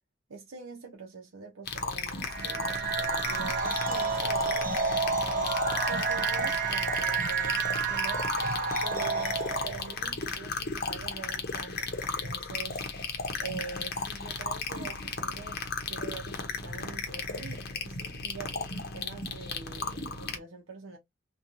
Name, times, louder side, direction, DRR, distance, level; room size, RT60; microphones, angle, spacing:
voice 1, 0.3-8.3 8.8-13.1 13.4-21.0, right 5 dB, 85° right, 0.6 m, -44 dB
sound 1, 1.7-20.4, left 4 dB, 50° left, 0.7 m, -35 dB
sound 2, 2.3-9.9, right 4 dB, 40° right, 0.6 m, -30 dB
2.9 x 2.3 x 2.5 m
head